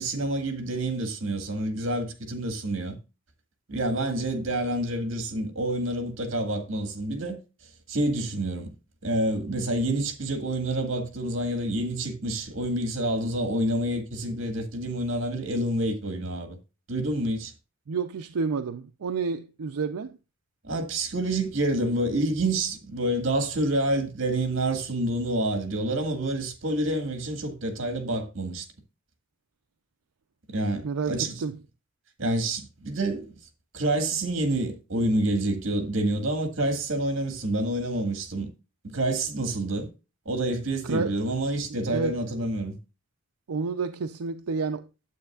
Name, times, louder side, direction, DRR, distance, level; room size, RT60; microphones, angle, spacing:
voice 1, 0.0-3.0 3.7-7.4 7.9-8.7 9.0-16.6 16.9-17.5 20.6-28.7 30.5-31.3 32.2-33.3 33.7-38.5 38.8-39.9 40.3-42.7, right 1 dB, 60° right, 1.8 m, -28 dB
voice 2, 17.9-20.2 30.8-31.6 40.8-41.2 41.9-42.2 43.5-44.9, right 4 dB, 85° right, 0.5 m, -30 dB
9.2 x 8.0 x 2.3 m
head